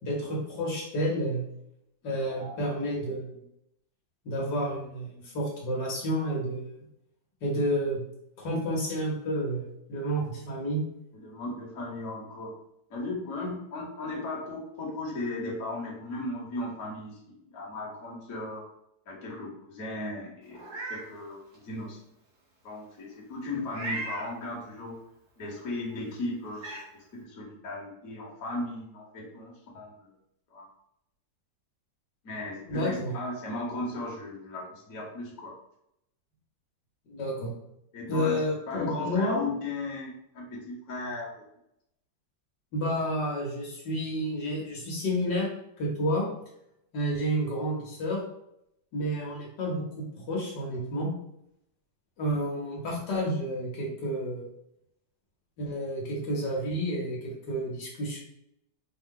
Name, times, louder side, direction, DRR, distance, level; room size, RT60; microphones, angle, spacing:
voice 1, 0.0-1.5 2.0-3.4 4.2-6.7 7.4-8.0 8.4-10.8 32.7-33.1 37.1-37.5 38.1-39.5 42.7-45.5 45.8-46.3 46.9-48.2 48.9-51.1 52.2-54.4 55.6-58.2, equal, 70° left, -3 dB, 1.6 m, -30 dB
voice 2, 2.0-2.7 11.1-12.5 12.9-17.2 17.5-18.6 19.1-22.0 22.6-25.0 25.4-30.1 30.5-30.7 32.2-35.5 37.9-38.4 38.7-41.3, left 2 dB, 50° left, -3 dB, 1.3 m, -36 dB
Meow, 20.5-21.0 21.5-21.6 23.7-24.3 25.9-26.0 26.5-26.8, right 2 dB, 60° right, 2.0 m, -36 dB
4.6 x 2.2 x 3.7 m, 0.78 s
omnidirectional pair, 2.0 m